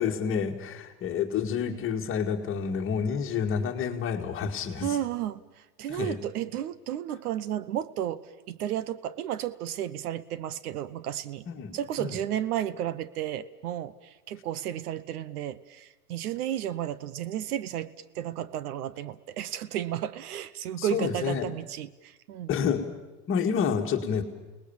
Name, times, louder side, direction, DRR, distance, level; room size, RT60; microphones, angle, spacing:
voice 1, 0.0-5.0 5.9-6.2 11.5-12.2 20.8-21.5 22.5-22.9 23.3-24.2, left 7 dB, 25° left, 4 dB, 2.0 m, -29 dB
voice 2, 4.8-11.4 11.7-22.5, right 11 dB, 70° right, 17 dB, 1.1 m, -33 dB
29.0 x 19.5 x 7.2 m, 1.1 s
supercardioid pair, 135°, 47 cm